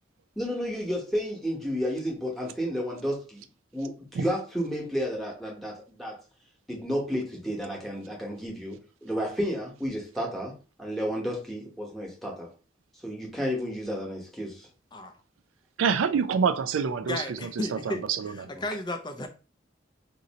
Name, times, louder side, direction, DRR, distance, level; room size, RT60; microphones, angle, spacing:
voice 1, 0.4-3.4 3.7-6.1 6.7-10.5 10.8-12.5 13.0-14.7 18.5-18.6, equal, ahead, 1.0 m, -32 dB
voice 2, 15.8-18.3, right 6 dB, 90° right, 0.4 m, -27 dB
voice 3, 17.0-19.3, left 1 dB, 20° left, 0.4 m, -34 dB
2.7 x 2.6 x 4.0 m
head